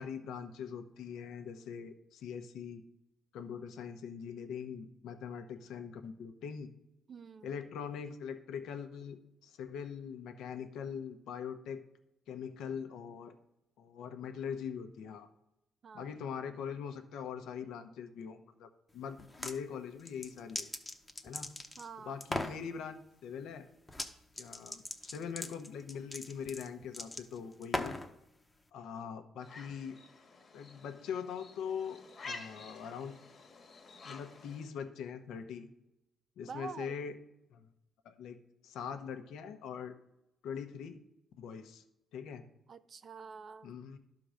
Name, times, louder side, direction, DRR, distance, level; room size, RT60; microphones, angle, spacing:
voice 1, 0.0-2.8 3.3-6.7 7.4-11.8 12.3-13.3 13.8-15.3 15.9-20.7 21.2-21.5 22.0-23.7 24.4-28.0 28.7-30.0 30.5-33.1 34.0-35.7 36.4-37.2 37.5-37.7 38.0-38.4 38.6-39.9 40.4-41.0 41.4-41.8 42.1-42.4 43.6-44.0, left 7 dB, 85° left, 0.9 m, -42 dB
voice 2, 7.1-7.5 15.8-16.1 21.8-22.2 36.5-37.0 42.7-43.7, right 5 dB, 50° right, 0.4 m, -47 dB
sound 1, 19.2-19.6 20.1-21.9 22.2-22.6 23.9-24.1 24.4-28.1, left 2 dB, 15° left, 0.9 m, -39 dB
sound 2, 29.4-34.7, left 3 dB, 40° left, 1.4 m, -50 dB
11.5 x 3.8 x 6.3 m
cardioid pair, 90°, 0 cm